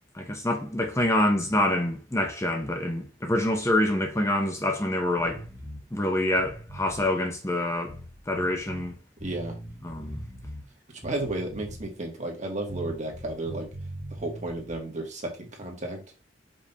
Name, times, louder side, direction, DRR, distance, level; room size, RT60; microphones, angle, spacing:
voice 1, 0.1-5.4 5.9-7.9 8.3-8.9 9.8-10.2, left 1 dB, 15° left, 1.0 m, -26 dB
sound 1, 5.2-5.8 6.3-7.1 7.9-8.9 9.2-10.7 11.0-12.0 12.7-14.8, right 1 dB, 10° right, 1.6 m, -41 dB
voice 2, 9.2-9.5 11.0-13.7 14.1-16.2, right 2 dB, 40° right, 1.8 m, -33 dB
5.3 x 3.4 x 5.5 m
head